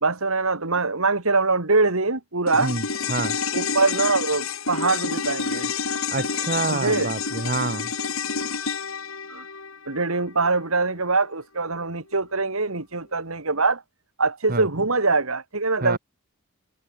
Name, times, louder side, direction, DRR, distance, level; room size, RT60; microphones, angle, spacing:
voice 1, 0.0-2.7 3.5-5.7 6.7-7.1 9.3-9.4 9.9-13.8 14.2-16.0, right 3 dB, 75° right, 2.5 m, -23 dB
sound 1, 2.5-11.0 11.2-11.3, left 5 dB, 70° left, 3.3 m, -29 dB
voice 2, 6.1-7.9 14.5-14.7 15.8-16.0, right 3 dB, 40° right, 1.0 m, -27 dB
head